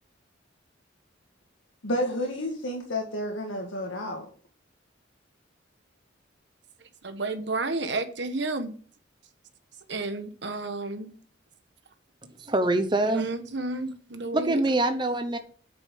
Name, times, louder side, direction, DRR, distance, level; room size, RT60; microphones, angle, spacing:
voice 1, 1.8-4.3, left 1 dB, 75° left, 0 dB, 1.8 m, -30 dB
voice 2, 7.0-8.7 9.9-11.1 13.0-14.6, right 2 dB, 60° right, 9 dB, 1.3 m, -31 dB
voice 3, 12.5-13.3 14.3-15.4, right 2 dB, 25° right, 8 dB, 0.8 m, -24 dB
8.9 x 7.0 x 5.3 m, 0.43 s
head